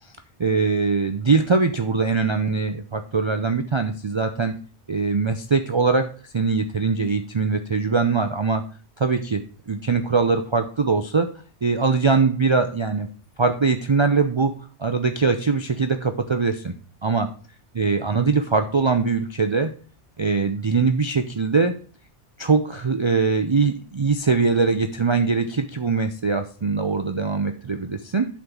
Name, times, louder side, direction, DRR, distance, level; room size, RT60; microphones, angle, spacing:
voice 1, 0.4-4.5 4.9-8.6 9.0-11.3 11.6-13.1 13.4-14.5 14.8-16.7 17.0-17.3 17.8-19.7 20.2-21.7 22.4-28.3, right 4 dB, 40° right, 6 dB, 0.4 m, -22 dB
8.3 x 3.9 x 5.9 m, 0.40 s
omnidirectional pair, 1.2 m